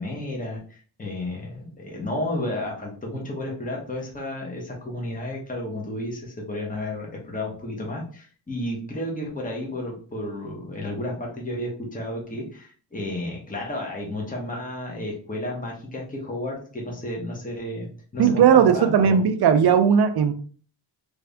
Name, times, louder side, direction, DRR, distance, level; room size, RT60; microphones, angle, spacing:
voice 1, 0.0-19.2, left 1 dB, 20° left, -1 dB, 1.1 m, -32 dB
voice 2, 18.2-20.3, right 7 dB, 55° right, 9 dB, 0.5 m, -17 dB
3.3 x 2.7 x 3.4 m, 0.43 s
cardioid pair, 80°, 45 cm